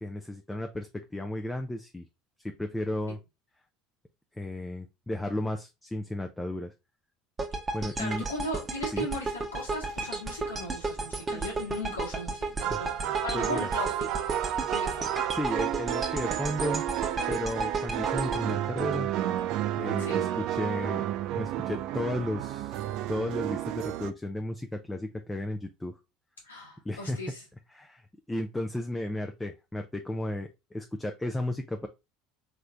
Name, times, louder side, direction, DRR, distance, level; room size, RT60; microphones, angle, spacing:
voice 1, 0.0-2.1 2.4-3.2 4.3-6.7 7.7-8.2 8.9-9.1 12.7-13.7 15.3-16.8 17.3-19.1 19.8-21.0 21.3-22.8 23.1-25.9 26.8-27.2 27.7-28.0 28.3-31.9, left 1 dB, 10° left, 0.5 m, -34 dB
sound 1, 7.4-19.6, right 3 dB, 20° right, 0.9 m, -34 dB
voice 2, 8.0-12.9 13.2-14.1 14.7-15.1 20.0-20.3 26.4-27.4, left 1 dB, 85° left, 1.7 m, -37 dB
sound 2, 9.9-10.2 10.7-10.8 12.3-12.4 12.6-24.1, right 12 dB, 55° right, 0.3 m, -31 dB
3.8 x 3.3 x 3.4 m
figure-of-eight pair, 65°, 0 cm